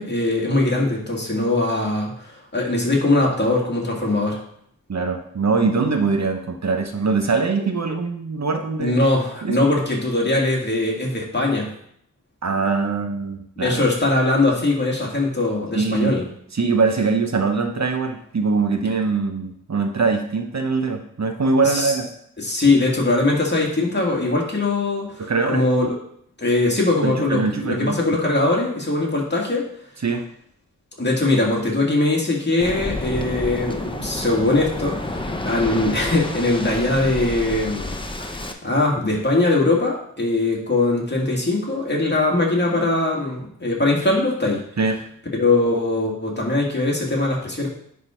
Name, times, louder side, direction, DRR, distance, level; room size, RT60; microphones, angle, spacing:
voice 1, 0.0-4.4 8.8-11.7 13.6-16.3 21.6-21.9 22.4-25.9 26.4-29.6 31.0-44.6 45.3-47.7, left 2 dB, 30° left, -3 dB, 2.2 m, -21 dB
voice 2, 4.9-9.0 9.4-9.6 12.4-13.8 15.7-16.1 16.5-22.1 25.2-25.6 27.0-28.0 30.0-30.2 44.8-45.0, right 4 dB, 55° right, 4 dB, 0.9 m, -22 dB
Waves surf, 32.6-38.5, left 2 dB, 15° left, 0.8 m, -29 dB
9.9 x 3.8 x 4.4 m, 0.68 s
wide cardioid pair, 80°, 33 cm